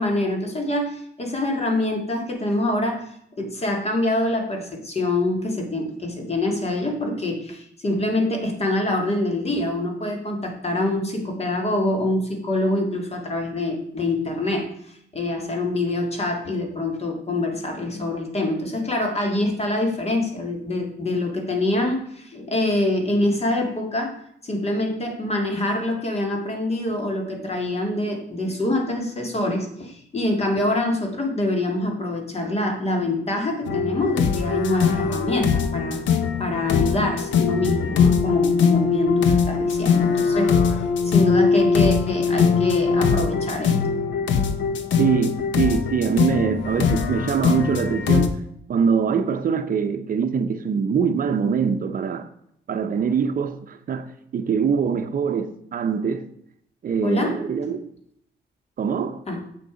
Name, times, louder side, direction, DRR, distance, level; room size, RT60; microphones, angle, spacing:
voice 1, 0.0-3.1 3.4-14.7 15.1-24.1 24.4-36.0 36.4-40.5 41.0-43.8 57.0-57.4 59.3-59.4, left 1 dB, 35° left, 2.1 m, -25 dB
sound 1, 33.7-48.3, left 6 dB, 85° left, 0.9 m, -21 dB
voice 2, 45.0-48.4 48.7-52.3 52.7-56.3 56.8-57.9 58.8-59.2, right 6 dB, 50° right, 0.7 m, -23 dB
7.8 x 6.6 x 5.1 m
cardioid pair, 125°, 19 cm